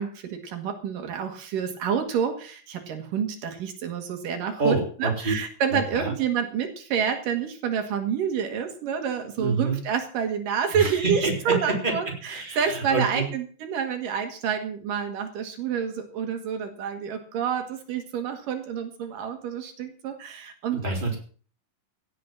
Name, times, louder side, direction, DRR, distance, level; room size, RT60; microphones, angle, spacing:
voice 1, 0.0-20.8, right 7 dB, 80° right, 6 dB, 3.5 m, -28 dB
voice 2, 4.4-5.3 5.7-6.1 9.4-9.8 10.7-11.9 12.3-13.3 20.7-21.2, right 3 dB, 15° right, 1 dB, 3.9 m, -27 dB
16.5 x 7.7 x 7.5 m, 0.42 s
omnidirectional pair, 3.8 m